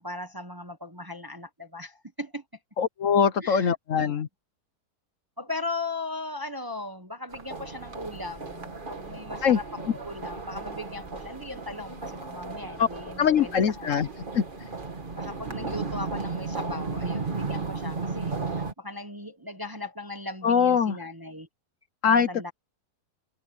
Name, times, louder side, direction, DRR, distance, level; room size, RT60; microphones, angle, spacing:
voice 1, 0.0-2.4 3.4-4.2 5.4-14.1 15.2-21.5 22.0-22.5, left 2 dB, 15° right, 1.0 m, -38 dB
voice 2, 2.8-4.3 9.4-9.6 12.8-12.9 13.2-14.1 14.3-14.4 20.4-21.0 22.0-22.5, left 7 dB, 60° left, 1.1 m, -22 dB
sound 1, 7.3-18.7, right 4 dB, 30° right, 1.8 m, -35 dB
omnidirectional pair, 1.7 m